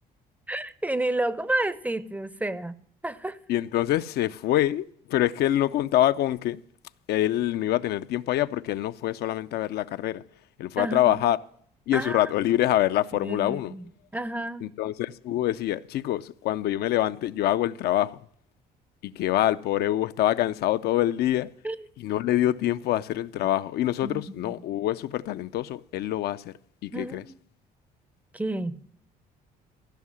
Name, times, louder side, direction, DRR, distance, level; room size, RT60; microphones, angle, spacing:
voice 1, 0.5-3.4 10.8-11.2 11.9-12.2 13.1-13.8 14.1-14.7 21.6-21.8 24.0-24.5 26.9-27.4 28.3-28.9, right 1 dB, 10° right, 0.5 m, -31 dB
voice 2, 3.5-6.6 7.1-10.2 10.6-11.4 11.9-13.7 14.6-18.2 19.0-21.5 22.0-26.5 26.8-27.2, left 13 dB, 70° left, 0.5 m, -25 dB
15.0 x 5.6 x 7.4 m
cardioid pair, 110°, 17 cm